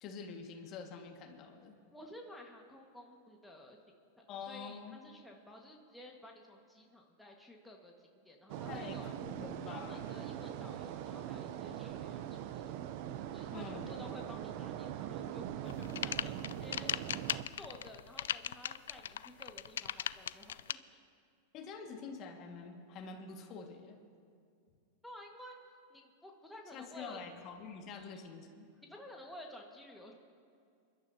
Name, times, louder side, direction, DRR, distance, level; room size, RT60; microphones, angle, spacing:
voice 1, 0.0-1.7 4.3-5.0 8.6-10.1 13.5-14.0 21.5-24.0 26.7-28.7, left 5 dB, 45° left, 2 dB, 1.8 m, -47 dB
voice 2, 1.9-3.8 4.2-9.2 9.7-12.8 13.3-16.9 17.6-21.0 25.0-25.6 25.9-27.2 27.9-28.5 28.8-30.1, left 1 dB, 5° left, 0 dB, 1.6 m, -53 dB
sound 1, 8.5-17.4, right 11 dB, 55° right, 0.6 m, -42 dB
sound 2, 15.7-20.7, left 10 dB, 80° left, 0.3 m, -37 dB
27.5 x 12.0 x 2.8 m, 2.4 s
hypercardioid pair, 110°, 0 cm